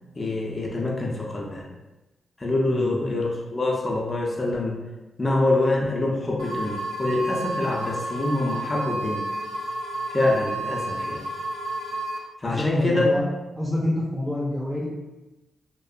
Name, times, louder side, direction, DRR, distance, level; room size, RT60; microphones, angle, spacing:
voice 1, 0.1-1.6 2.4-4.8 5.2-9.3 10.1-11.2 12.4-13.2, left 2 dB, 30° left, -2 dB, 0.6 m, -25 dB
sound 1, 6.4-12.2, right 1 dB, 80° right, 0.4 m, -31 dB
voice 2, 12.4-13.3 13.6-14.9, left 1 dB, 5° right, -6 dB, 0.6 m, -27 dB
2.5 x 2.1 x 2.4 m, 1.1 s
supercardioid pair, 55°, 0 cm